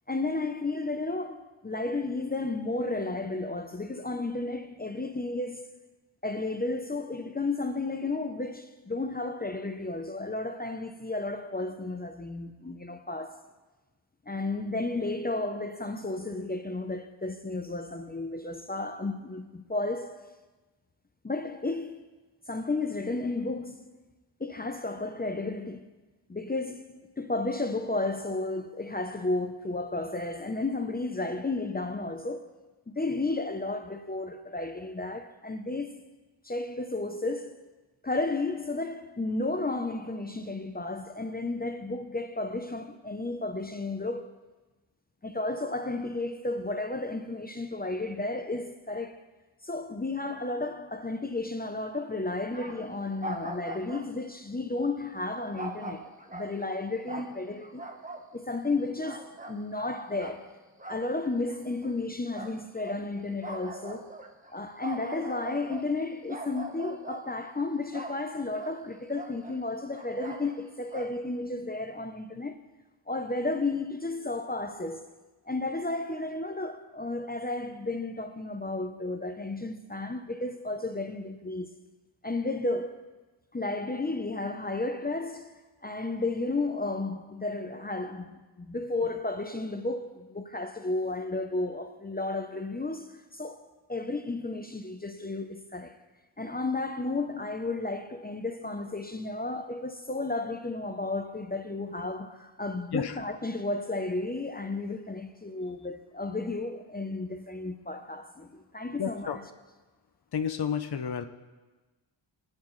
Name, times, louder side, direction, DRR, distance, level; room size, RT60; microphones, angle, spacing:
voice 1, 0.1-5.8 6.2-13.4 14.3-20.4 21.2-22.1 22.5-23.9 24.4-25.9 26.3-32.5 32.9-36.0 36.4-37.6 38.0-44.3 45.2-49.2 49.6-57.8 58.3-60.5 60.9-64.1 64.5-72.6 73.1-75.0 75.5-81.7 82.2-83.0 83.5-96.0 96.4-109.4, left 2 dB, 20° left, 0.7 m, -33 dB
sound 1, 52.5-52.9 53.2-54.1 55.6-56.8 57.1-58.3 58.7-59.9 60.2-60.4 60.8-61.1 61.5-61.9 62.3-63.0 63.4-66.0 66.3-67.3 67.9-68.3 68.5-68.8 69.1-70.6 70.9-71.1, right 2 dB, 15° right, 1.1 m, -41 dB
voice 2, 109.0-109.4 110.3-111.2, left 7 dB, 55° left, 0.8 m, -31 dB
23.5 x 9.7 x 3.2 m
wide cardioid pair, 110°, 46 cm